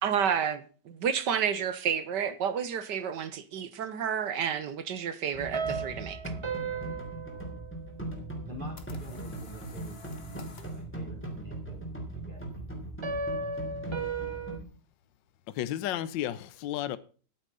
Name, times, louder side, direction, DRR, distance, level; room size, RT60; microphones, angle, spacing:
voice 1, 0.0-6.2, right 8 dB, 65° right, 1.7 m, -30 dB
sound 1, 5.3-14.6, right 2 dB, 5° left, 3.3 m, -39 dB
sound 2, 5.5-8.2 13.0-14.6, right 4 dB, 50° right, 0.3 m, -35 dB
sound 3, 8.3-10.9, left 4 dB, 35° left, 1.5 m, -52 dB
voice 2, 8.4-12.7, left 1 dB, 25° right, 3.5 m, -48 dB
voice 3, 15.6-17.0, left 12 dB, 75° left, 1.4 m, -32 dB
12.0 x 8.8 x 5.4 m
omnidirectional pair, 2.0 m